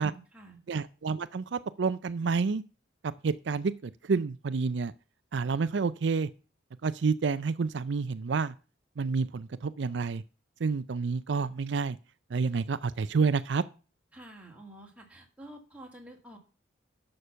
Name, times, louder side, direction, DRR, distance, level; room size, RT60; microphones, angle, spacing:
voice 1, 0.0-0.6 14.1-16.4, right 1 dB, 5° right, 1 dB, 2.7 m, -49 dB
voice 2, 0.7-2.6 3.2-4.9 5.3-6.3 6.8-8.5 9.0-10.2 10.6-12.0 12.3-13.6, right 4 dB, 65° right, 14 dB, 0.5 m, -29 dB
11.0 x 6.6 x 5.6 m, 0.35 s
head